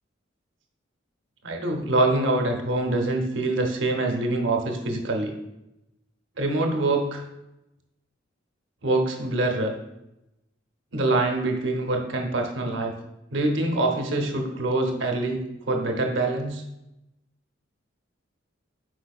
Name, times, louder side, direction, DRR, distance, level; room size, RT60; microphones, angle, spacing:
voice 1, 1.4-5.3 6.4-7.2 8.8-9.7 10.9-13.0 13.3-15.4 15.7-16.6, right 2 dB, 70° right, 3 dB, 0.7 m, -25 dB
4.9 x 4.5 x 2.3 m, 0.91 s
head